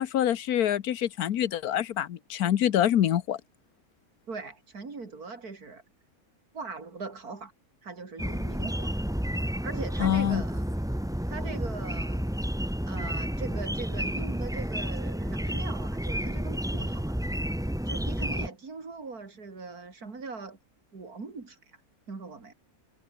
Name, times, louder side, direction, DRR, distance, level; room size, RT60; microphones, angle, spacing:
voice 1, 0.0-3.4 10.0-10.4, left 10 dB, 80° left, 1.4 m, -25 dB
voice 2, 4.3-5.8 6.5-7.5 7.8-8.9 9.6-10.6 11.3-12.3 12.9-17.3 17.9-20.6 20.9-21.6 22.1-22.5, right 4 dB, 85° right, 3.6 m, -40 dB
sound 1, 8.2-18.5, equal, 5° right, 1.2 m, -31 dB
omnidirectional pair, 1.6 m